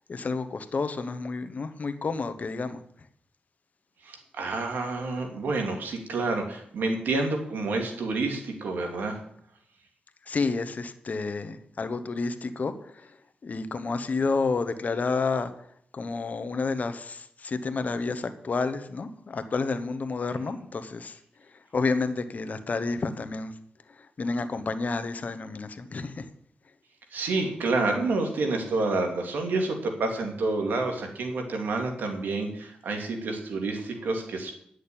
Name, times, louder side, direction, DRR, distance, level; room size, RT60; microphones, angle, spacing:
voice 1, 0.1-2.8 10.2-13.2 13.4-15.7 15.9-21.2 21.5-23.5 23.9-26.3, left 4 dB, 55° left, 11 dB, 1.1 m, -30 dB
voice 2, 4.0-9.2 27.1-34.5, right 3 dB, 85° right, 3 dB, 2.4 m, -29 dB
10.5 x 6.5 x 8.7 m, 0.69 s
cardioid pair, 55°, 3 cm